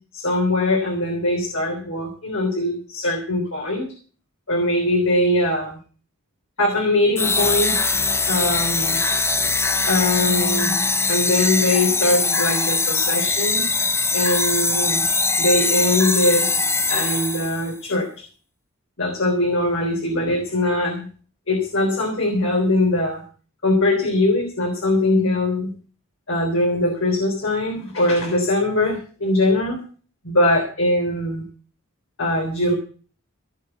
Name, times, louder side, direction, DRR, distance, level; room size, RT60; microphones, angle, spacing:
voice 1, 0.1-3.9 4.5-5.8 6.6-7.8 8.3-9.0 9.9-10.8 11.1-13.7 14.1-15.0 15.4-16.5 16.9-18.2 19.0-21.1 21.5-23.2 23.6-25.7 26.3-29.8 30.2-31.4 32.2-32.7, left 1 dB, 60° left, 2 dB, 3.5 m, -21 dB
sound 1, 7.2-17.7, left 3 dB, 10° left, 0.7 m, -21 dB
16.0 x 6.7 x 8.0 m, 0.39 s
head